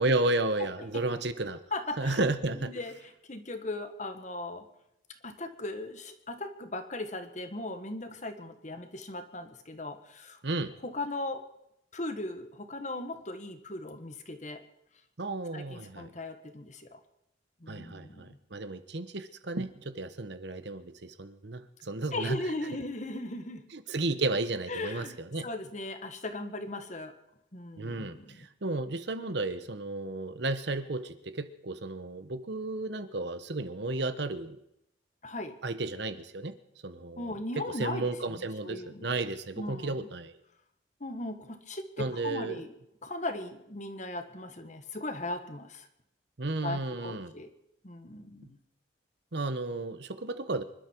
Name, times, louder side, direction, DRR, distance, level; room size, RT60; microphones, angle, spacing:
voice 1, 0.0-1.6 2.0-2.7 10.4-10.7 15.2-16.1 17.7-22.4 23.7-25.5 27.8-34.6 35.6-36.5 36.8-40.3 42.0-42.6 46.4-47.3 48.4-48.5 49.3-50.6, right 2 dB, 55° right, 11 dB, 1.0 m, -33 dB
voice 2, 1.7-2.2 2.6-4.7 5.2-10.4 10.8-11.4 11.9-14.6 15.5-17.0 17.6-18.4 22.1-23.6 24.7-27.1 27.5-28.5 35.2-35.5 37.2-39.1 39.6-40.0 41.0-42.8 43.0-45.9 46.6-47.5 47.8-48.6, left 2 dB, 35° left, 8 dB, 1.5 m, -38 dB
26.0 x 12.0 x 4.6 m, 0.82 s
head